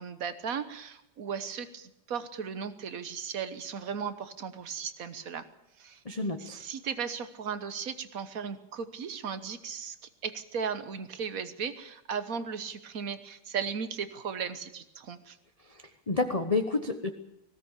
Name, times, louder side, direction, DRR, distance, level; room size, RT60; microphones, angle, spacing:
voice 1, 0.0-5.5 5.8-6.0 6.4-10.0 10.2-15.4, right 6 dB, 50° right, 12 dB, 1.4 m, -36 dB
voice 2, 6.0-6.6 15.6-17.1, left 3 dB, 30° left, 6 dB, 0.8 m, -30 dB
19.0 x 16.5 x 8.2 m, 0.84 s
omnidirectional pair, 2.1 m